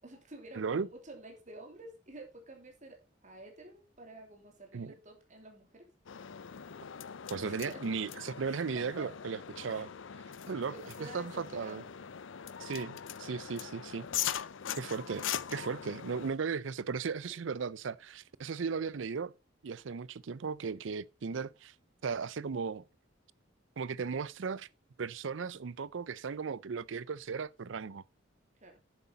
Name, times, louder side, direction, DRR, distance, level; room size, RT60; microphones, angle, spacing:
voice 1, 0.0-5.9 7.4-7.8 8.4-9.1 9.6-9.9 10.7-11.9 16.2-16.3 28.6-28.8, right 1 dB, 40° right, 3.1 m, -50 dB
voice 2, 0.6-0.9 4.7-4.9 7.3-9.9 10.5-10.7 11.0-11.8 12.6-14.4 14.8-19.3 19.6-21.7 22.0-22.8 23.8-24.7 25.0-28.0, right 5 dB, 75° right, 0.5 m, -36 dB
sound 1, 6.1-16.3, left 9 dB, 80° left, 0.6 m, -41 dB
9.9 x 8.0 x 4.0 m
head